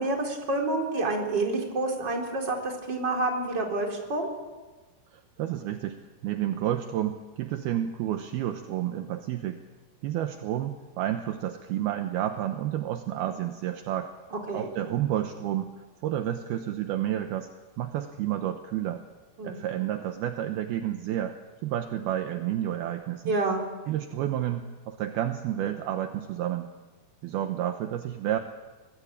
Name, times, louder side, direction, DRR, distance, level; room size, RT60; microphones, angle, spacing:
voice 1, 0.0-4.3 14.3-14.7 19.4-19.6 23.2-23.6, right 2 dB, 25° right, 1 dB, 4.1 m, -28 dB
voice 2, 5.1-9.6 10.0-14.1 14.5-15.7 16.0-17.5 17.8-19.0 19.4-21.3 21.6-23.3 23.9-26.7 27.2-28.4, right 12 dB, 75° right, 7 dB, 2.7 m, -30 dB
25.5 x 20.0 x 8.7 m, 1.2 s
omnidirectional pair, 4.8 m